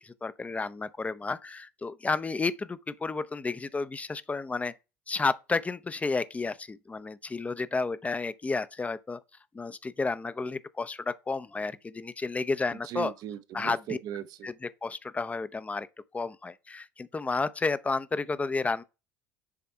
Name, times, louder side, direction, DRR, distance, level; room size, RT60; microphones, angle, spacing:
voice 1, 0.0-4.7 5.1-9.2 9.5-13.1 13.5-14.0 14.4-15.9 16.1-18.8, left 3 dB, 15° left, 0.5 m, -31 dB
voice 2, 12.8-14.5, right 11 dB, 55° right, 0.6 m, -38 dB
7.2 x 3.4 x 4.4 m
hypercardioid pair, 70°, 8 cm